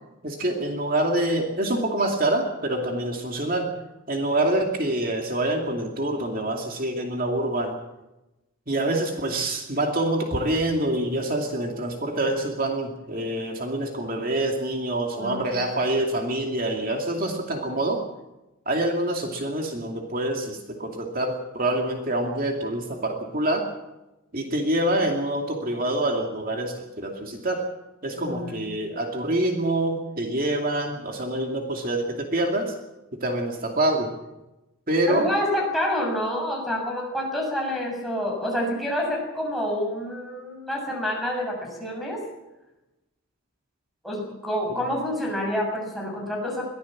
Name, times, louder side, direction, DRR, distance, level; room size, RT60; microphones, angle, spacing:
voice 1, 0.2-3.7 4.1-7.7 8.7-18.0 18.7-23.7 24.3-27.7 28.0-32.8 33.1-34.1 34.9-35.3 44.7-44.8, right 1 dB, 40° right, 2 dB, 2.6 m, -26 dB
voice 2, 15.2-15.6 28.2-28.7 35.1-42.2 44.0-46.6, equal, ahead, -2 dB, 6.7 m, -28 dB
22.5 x 16.0 x 7.4 m, 0.97 s
head